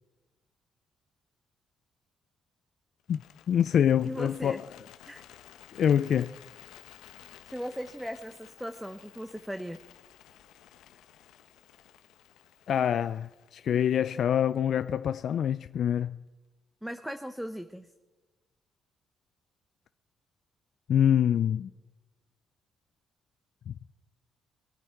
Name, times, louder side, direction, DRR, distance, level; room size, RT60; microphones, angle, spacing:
Bird, 3.0-15.2, left 11 dB, 90° left, 0.8 m, -54 dB
voice 1, 3.5-4.6 5.7-6.3 12.7-16.2 20.9-21.7 23.7-23.8, left 9 dB, 65° left, 0.3 m, -25 dB
voice 2, 4.0-4.6 5.1-5.2 7.5-9.8 16.8-17.9, equal, ahead, 0.7 m, -38 dB
22.0 x 9.2 x 4.6 m
cardioid pair, 90°, 0 cm